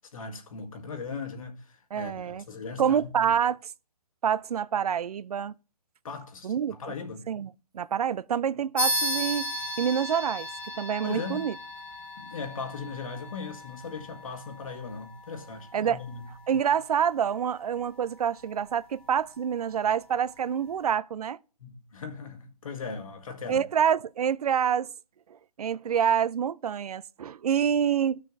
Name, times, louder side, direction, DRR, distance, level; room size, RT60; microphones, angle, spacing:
voice 1, 0.1-3.3 6.0-7.3 11.0-11.5 12.2-16.4 21.6-23.6, left 4 dB, 60° left, 1.7 m, -38 dB
voice 2, 1.9-2.4 2.8-3.6 4.2-5.5 6.4-6.8 7.3-7.5 7.7-9.5 9.8-10.5 10.8-11.5 15.7-16.0 16.5-21.4 23.5-24.9 25.6-28.2, right 8 dB, 75° right, 0.4 m, -27 dB
sound 1, 8.8-18.7, equal, 5° left, 0.8 m, -36 dB
16.0 x 6.5 x 2.6 m
hypercardioid pair, 155°, 20 cm